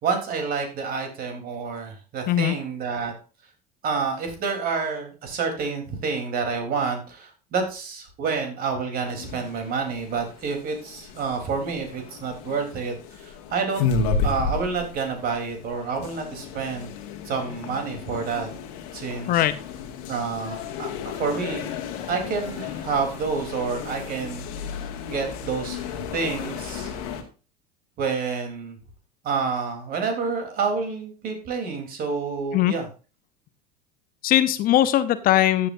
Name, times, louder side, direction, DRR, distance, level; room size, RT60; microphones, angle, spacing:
voice 1, 0.0-3.1 3.8-13.9 14.2-16.9 17.2-18.5 18.9-19.4 20.1-21.7 22.1-24.4 25.1-26.9 28.0-28.8 29.2-32.9, right 5 dB, 45° right, 4 dB, 3.6 m, -28 dB
sound 1, 9.0-27.2, left 5 dB, 60° left, 1.9 m, -33 dB
voice 2, 34.2-35.7, left 13 dB, 45° left, 13 dB, 0.8 m, -20 dB
14.0 x 8.6 x 2.7 m, 0.34 s
hypercardioid pair, 75°, 21 cm